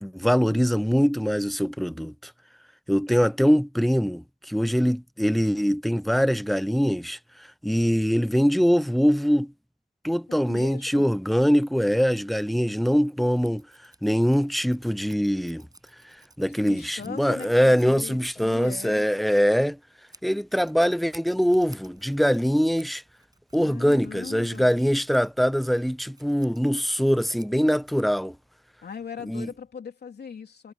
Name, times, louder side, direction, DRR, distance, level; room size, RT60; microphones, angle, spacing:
voice 1, 0.0-2.3 2.9-7.2 7.6-9.5 10.0-13.7 14.0-15.6 16.4-19.8 20.2-23.0 23.5-28.3 29.3-29.5, equal, ahead, 0.7 m, -23 dB
voice 2, 10.3-11.1 16.5-19.1 23.6-24.8 28.8-30.7, left 6 dB, 75° left, 3.5 m, -39 dB
Scissors, 12.9-28.5, right 2 dB, 25° right, 6.8 m, -55 dB
wide cardioid pair, 125°, 17 cm